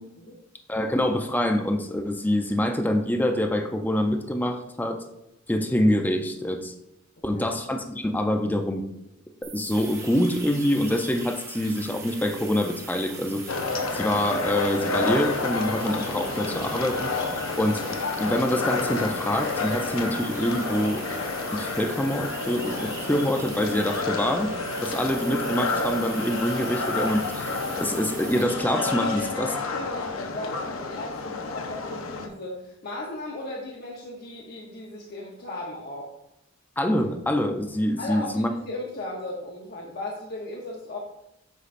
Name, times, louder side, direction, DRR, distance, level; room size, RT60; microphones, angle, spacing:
voice 1, 0.7-5.0 5.5-6.7 7.2-8.9 9.4-13.5 13.9-17.1 17.6-21.0 21.5-24.5 24.8-29.5 36.8-38.5, left 1 dB, 10° left, 4 dB, 0.5 m, -25 dB
sound 1, 9.4-28.4, right 8 dB, 85° right, 1.6 m, -44 dB
sound 2, 9.7-29.3, right 2 dB, 15° right, 0.9 m, -44 dB
sound 3, 13.5-32.3, left 3 dB, 90° left, 0.8 m, -30 dB
voice 2, 29.0-36.1 38.0-41.0, left 2 dB, 50° left, -2 dB, 0.9 m, -36 dB
8.0 x 5.5 x 2.5 m, 0.86 s
head